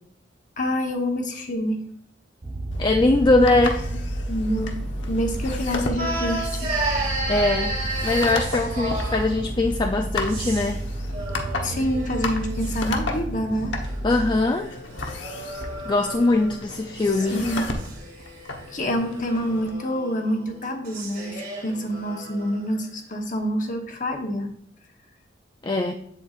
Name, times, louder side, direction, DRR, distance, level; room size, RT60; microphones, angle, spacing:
voice 1, 0.6-1.8 4.3-4.8 5.1-6.7 11.6-13.7 17.3-17.7 18.7-24.5, equal, 45° left, 3 dB, 1.1 m, -27 dB
sound 1, 2.4-14.4, right 1 dB, 30° right, 0.5 m, -31 dB
sound 2, 2.7-19.7, left 3 dB, 90° left, 1.1 m, -35 dB
voice 2, 2.8-3.9 7.3-10.8 14.0-14.7 15.9-17.5 25.6-25.9, left 2 dB, 25° left, 3 dB, 0.4 m, -21 dB
sound 3, 6.0-9.4 10.2-10.8 11.1-12.8 13.8-16.6 17.0-22.6, right 2 dB, 50° right, 2.3 m, -33 dB
8.0 x 7.7 x 2.4 m, 0.68 s
head